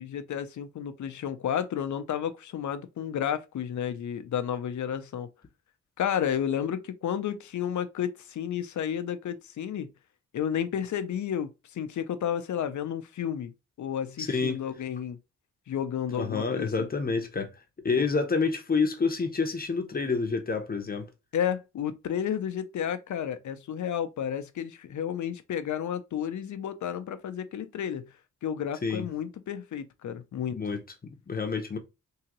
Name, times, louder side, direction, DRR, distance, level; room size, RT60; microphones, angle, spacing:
voice 1, 0.0-5.3 6.0-9.9 10.3-13.5 13.8-15.2 15.7-16.9 21.3-28.1 28.4-30.6, left 9 dB, 75° left, 0.6 m, -32 dB
voice 2, 14.2-14.6 16.1-17.5 17.8-21.1 28.8-29.1 30.5-31.8, left 4 dB, 30° left, 0.8 m, -28 dB
3.8 x 2.8 x 2.9 m
wide cardioid pair, 120°, 30 cm